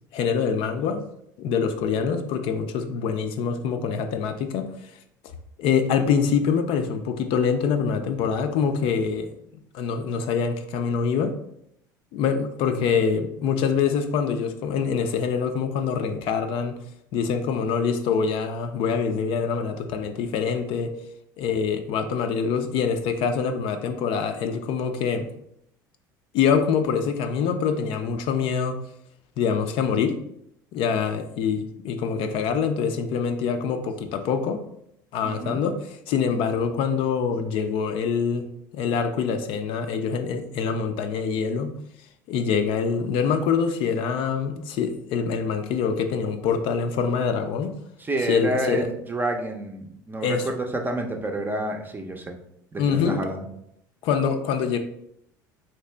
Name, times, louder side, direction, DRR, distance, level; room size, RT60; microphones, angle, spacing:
voice 1, 0.1-1.0 1.4-4.9 5.6-9.3 9.7-11.3 12.1-16.7 17.1-20.9 21.4-25.3 26.3-28.8 29.4-30.2 30.7-34.6 35.1-38.4 38.7-41.8 42.3-47.7 48.2-48.9 50.2-50.5 52.8-53.2 54.0-54.8, left 6 dB, 55° left, 7 dB, 0.4 m, -25 dB
voice 2, 35.2-35.6 48.0-52.4 52.7-53.4, right 2 dB, 15° right, 3 dB, 0.6 m, -29 dB
3.2 x 2.8 x 3.2 m, 0.74 s
hypercardioid pair, 70°, 11 cm